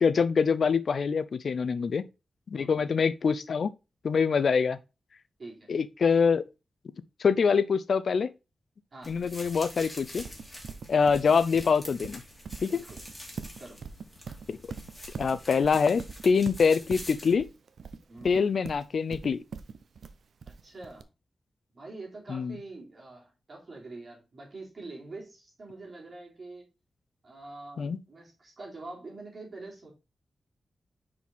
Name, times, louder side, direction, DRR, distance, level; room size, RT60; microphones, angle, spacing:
voice 1, 0.0-2.0 2.5-3.7 4.0-4.8 5.7-6.4 7.2-8.3 9.1-10.2 10.9-12.2 12.6-12.8 14.5-14.6 15.2-17.5 18.2-19.4 22.3-22.6 27.8-28.0, left 5 dB, 70° left, 0.4 m, -25 dB
voice 2, 2.5-3.0 4.3-4.5 5.4-5.7 8.9-9.2 12.7-13.0 13.6-13.8 18.1-18.5 20.5-21.1 21.7-26.7 27.2-29.9, right 2 dB, 50° right, 3.3 m, -45 dB
sound 1, 9.0-17.3, left 1 dB, 15° left, 2.7 m, -46 dB
Livestock farm animals working animals, 10.2-21.0, right 5 dB, 75° right, 0.6 m, -42 dB
6.0 x 4.9 x 3.5 m
cardioid pair, 75°, 0 cm